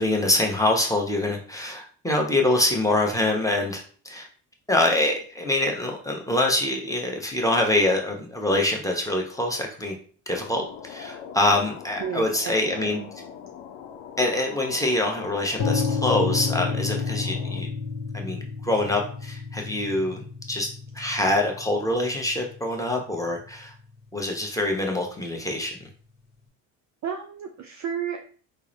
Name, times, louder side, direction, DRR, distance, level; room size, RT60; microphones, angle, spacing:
voice 1, 0.0-4.3 4.7-9.9 10.3-13.0 14.2-17.7 18.1-20.2 20.5-20.7 20.9-23.7 24.1-25.9, left 1 dB, 5° left, 1 dB, 0.8 m, -25 dB
sound 1, 10.3-17.6, left 7 dB, 80° left, 0.6 m, -41 dB
voice 2, 12.0-13.1 27.0-28.3, right 8 dB, 40° right, 4 dB, 0.4 m, -33 dB
sound 2, 15.6-23.5, left 4 dB, 60° left, 1.0 m, -31 dB
3.6 x 2.0 x 3.1 m, 0.43 s
hypercardioid pair, 60°, 47 cm